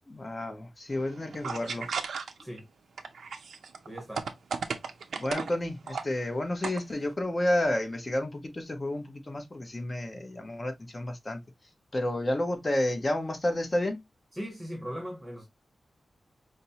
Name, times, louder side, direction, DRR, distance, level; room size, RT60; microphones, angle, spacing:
voice 1, 0.1-1.9 5.2-11.4 11.9-14.0, left 1 dB, 30° left, 0.8 m, -30 dB
sound 1, 0.9-2.6 3.0-5.5 5.9-6.0 6.4-7.0, right 5 dB, 90° right, 0.5 m, -35 dB
voice 2, 3.8-4.2 14.3-15.4, equal, 5° right, 1.0 m, -38 dB
5.1 x 2.0 x 2.8 m
wide cardioid pair, 115°, 0 cm